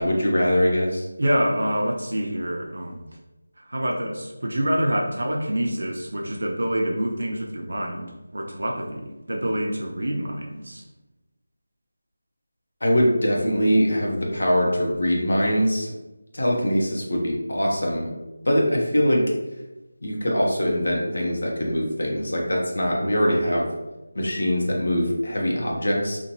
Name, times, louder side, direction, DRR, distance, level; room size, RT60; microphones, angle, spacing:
voice 1, 0.0-1.1 12.8-15.9 16.3-18.1 18.5-19.2 20.0-23.7 24.1-26.2, equal, 70° left, -2 dB, 0.7 m, -22 dB
voice 2, 1.2-3.0 3.7-10.8 23.2-23.6, equal, 70° right, 0 dB, 0.5 m, -26 dB
2.7 x 2.2 x 2.9 m, 1.0 s
figure-of-eight pair, 180°, 0 cm